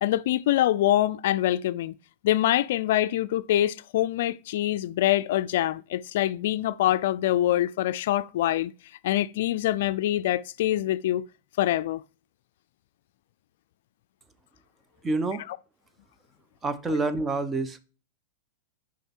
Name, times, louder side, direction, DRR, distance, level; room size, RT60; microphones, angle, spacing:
voice 1, 0.0-2.0 2.2-8.7 9.0-11.2 11.6-12.0, left 13 dB, 70° left, 0.3 m, -25 dB
voice 2, 15.0-15.4 16.6-17.8, right 3 dB, 15° right, 0.7 m, -27 dB
6.5 x 5.1 x 4.4 m
hypercardioid pair, 120°, 0 cm